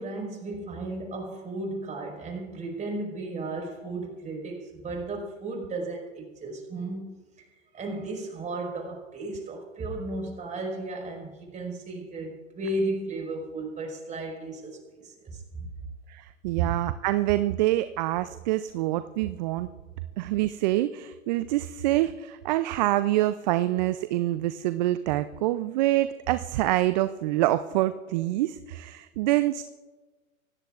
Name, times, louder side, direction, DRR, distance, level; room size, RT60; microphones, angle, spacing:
voice 1, 0.0-7.5 7.7-15.7 16.6-16.8, right 2 dB, 20° right, 1 dB, 5.0 m, -34 dB
voice 2, 16.1-19.7 20.2-29.6, right 15 dB, 35° right, 12 dB, 0.5 m, -26 dB
26.0 x 18.0 x 2.5 m, 1.3 s
hypercardioid pair, 120°, 41 cm